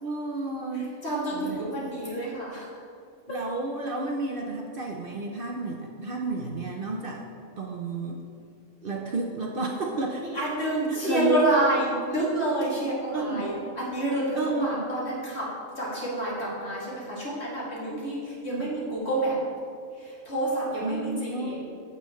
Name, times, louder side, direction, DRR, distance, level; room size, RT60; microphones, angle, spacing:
voice 1, 0.0-0.9 1.3-1.6 3.3-7.3 7.6-8.2 8.8-10.4 10.9-11.4 13.1-13.4 14.3-14.8 17.9-18.0 18.3-18.7 20.8-21.5, right 2 dB, 50° right, 0 dB, 0.8 m, -31 dB
voice 2, 0.7-2.7 10.3-15.5 15.7-19.3 20.0-21.5, right 1 dB, 55° left, -7 dB, 2.8 m, -28 dB
15.5 x 5.6 x 3.1 m, 2.4 s
omnidirectional pair, 1.3 m